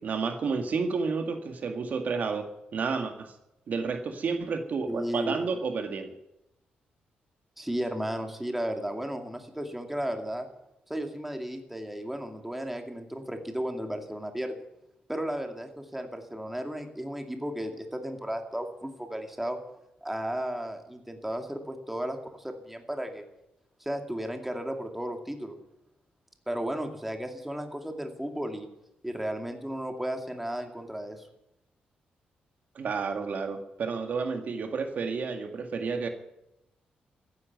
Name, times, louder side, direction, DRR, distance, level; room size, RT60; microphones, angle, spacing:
voice 1, 0.0-3.3 3.7-6.1 32.8-36.1, right 5 dB, 55° right, 6 dB, 1.9 m, -31 dB
voice 2, 4.9-5.4 7.6-10.5 10.9-14.6 15.1-19.6 20.0-23.2 23.8-25.6 26.5-28.7 29.0-31.3, right 1 dB, 5° right, 5 dB, 2.3 m, -34 dB
14.5 x 10.5 x 9.3 m, 0.89 s
cardioid pair, 110°, 3 cm